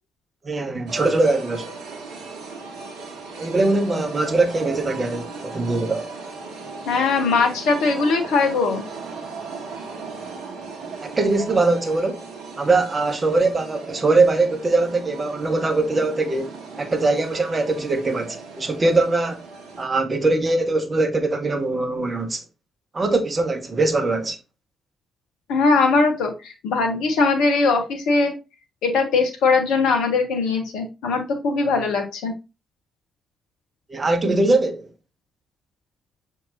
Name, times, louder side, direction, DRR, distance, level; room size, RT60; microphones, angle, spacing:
voice 1, 0.4-1.7 3.4-6.0 11.0-12.3 12.6-19.5 19.8-22.4 22.9-24.4 33.9-34.9, right 2 dB, 30° right, 0.7 m, -21 dB
sound 1, 0.9-19.9, right 4 dB, 65° right, 0.7 m, -37 dB
voice 2, 6.8-8.8 25.5-28.3 28.8-32.3, left 4 dB, 65° left, 0.5 m, -20 dB
5.8 x 2.7 x 2.5 m
figure-of-eight pair, 40°, 0 cm